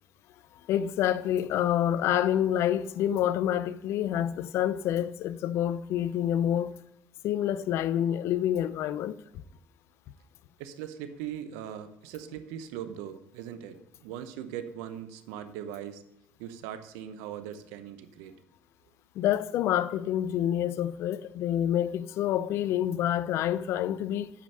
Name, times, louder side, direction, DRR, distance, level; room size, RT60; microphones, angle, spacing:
voice 1, 0.7-6.7 7.2-9.2 19.2-24.3, left 11 dB, 65° left, 0.5 m, -27 dB
voice 2, 10.6-16.0 16.4-18.3, right 10 dB, 80° right, 0.9 m, -40 dB
8.5 x 5.3 x 6.6 m
hypercardioid pair, 70°, 5 cm